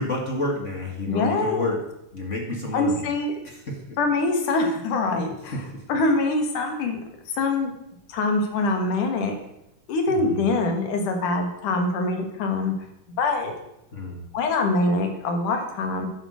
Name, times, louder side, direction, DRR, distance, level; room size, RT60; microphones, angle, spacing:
voice 1, 0.0-1.8 2.1-3.0 3.4-4.0 5.5-5.8 10.1-10.5 13.9-14.3, left 2 dB, 30° left, 2 dB, 1.5 m, -30 dB
voice 2, 1.1-1.7 2.7-3.4 4.0-5.6 5.9-7.0 7.3-7.7 8.1-9.4 9.9-12.7 13.2-13.5 14.3-16.1, left 3 dB, 75° left, 4 dB, 3.3 m, -24 dB
11.0 x 10.5 x 6.4 m, 0.82 s
omnidirectional pair, 3.7 m